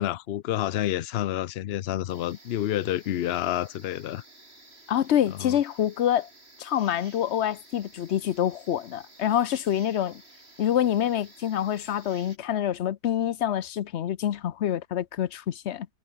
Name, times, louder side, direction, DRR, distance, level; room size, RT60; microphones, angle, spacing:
voice 1, 0.0-4.2 5.3-5.6, left 12 dB, 85° left, 0.5 m, -29 dB
sound 1, 2.1-12.4, right 2 dB, 40° right, 5.8 m, -53 dB
voice 2, 4.9-6.3 6.6-10.2 10.6-15.9, left 10 dB, 55° left, 0.8 m, -26 dB
omnidirectional pair, 1.7 m